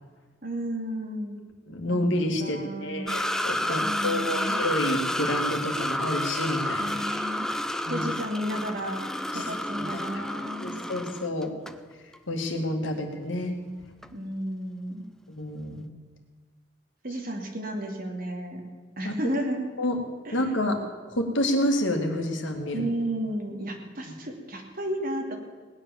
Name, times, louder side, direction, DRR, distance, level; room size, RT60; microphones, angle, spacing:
voice 1, 0.4-1.4 1.9-2.1 2.4-3.1 3.8-4.6 6.8-7.5 7.9-9.0 9.3-10.8 14.1-15.0 17.0-18.6 19.0-19.6 20.2-20.4 22.7-25.3, right 1 dB, 50° right, 2 dB, 2.7 m, -33 dB
voice 2, 1.7-6.9 7.9-8.1 9.3-9.5 9.8-10.0 10.6-11.5 12.3-13.6 15.3-15.9 19.0-19.1 19.8-20.0 20.3-20.8 21.1-22.8, left 1 dB, 75° left, 3 dB, 2.3 m, -28 dB
sound 1, 3.1-11.8 12.1-12.2 14.0-14.1, left 1 dB, 5° left, 0.5 m, -30 dB
18.5 x 10.0 x 7.2 m, 1.5 s
head